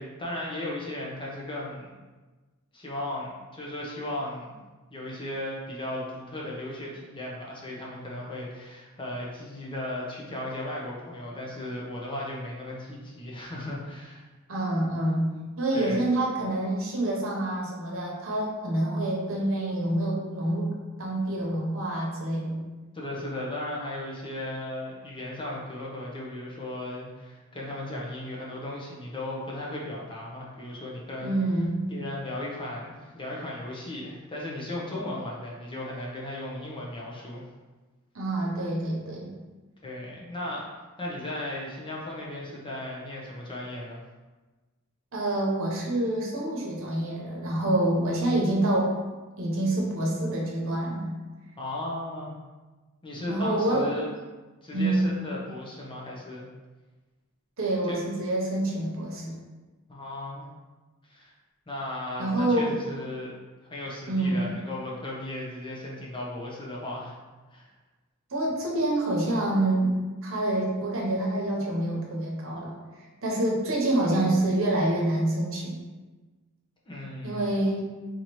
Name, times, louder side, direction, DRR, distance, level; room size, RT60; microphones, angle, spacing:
voice 1, 0.0-1.9 2.7-4.6 4.9-14.3 15.7-16.0 22.9-31.4 31.9-37.5 39.8-40.7 41.0-44.0 51.6-52.3 53.0-54.1 54.6-56.4 57.9-58.0 59.9-60.5 61.1-61.3 61.7-63.3 63.6-67.2 67.5-67.7 76.9-77.5, left 1 dB, 25° left, -4 dB, 0.7 m, -36 dB
voice 2, 14.5-15.3 15.6-22.6 31.2-31.9 38.1-39.3 45.1-49.0 49.4-51.1 53.3-53.9 54.7-55.1 57.6-59.4 62.2-62.8 64.1-64.4 68.3-69.9 70.2-72.7 73.2-75.8 77.2-77.8, right 1 dB, 65° right, -2 dB, 0.9 m, -27 dB
4.0 x 3.0 x 3.0 m, 1.2 s
head